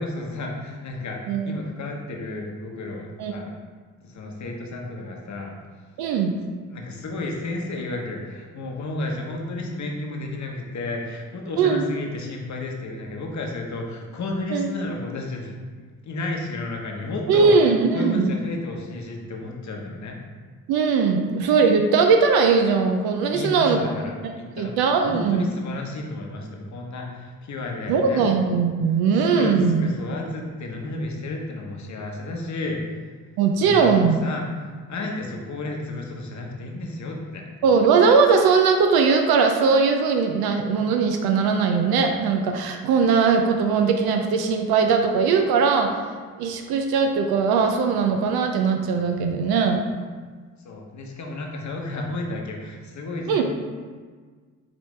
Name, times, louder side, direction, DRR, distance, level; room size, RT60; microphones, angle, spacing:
voice 1, 0.0-3.5 4.0-5.5 6.7-20.2 23.3-24.7 25.0-28.3 29.3-32.8 33.6-37.8 50.6-53.4, left 2 dB, 45° left, 1 dB, 0.9 m, -32 dB
voice 2, 6.0-6.3 11.6-11.8 14.5-14.7 17.3-18.3 20.7-23.9 24.2-25.5 27.9-29.9 33.4-34.2 37.6-46.0 46.4-49.8 53.3-53.4, right 5 dB, 70° right, 4 dB, 0.5 m, -20 dB
5.2 x 2.9 x 3.2 m, 1.5 s
hypercardioid pair, 50°, 39 cm